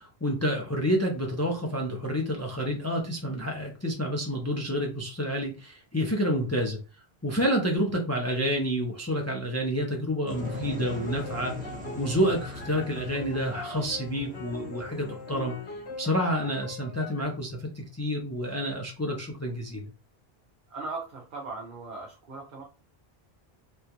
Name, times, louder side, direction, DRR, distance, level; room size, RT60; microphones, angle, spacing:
voice 1, 0.0-6.8 7.2-11.5 12.0-15.5 16.0-19.8, equal, 20° left, 1 dB, 0.5 m, -29 dB
sound 1, 10.3-17.2, left 2 dB, 75° left, 1.2 m, -41 dB
sound 2, 10.3-16.1, equal, 10° right, 0.9 m, -40 dB
voice 2, 20.7-22.6, right 3 dB, 55° right, -1 dB, 0.9 m, -38 dB
3.4 x 2.4 x 2.9 m, 0.33 s
omnidirectional pair, 1.1 m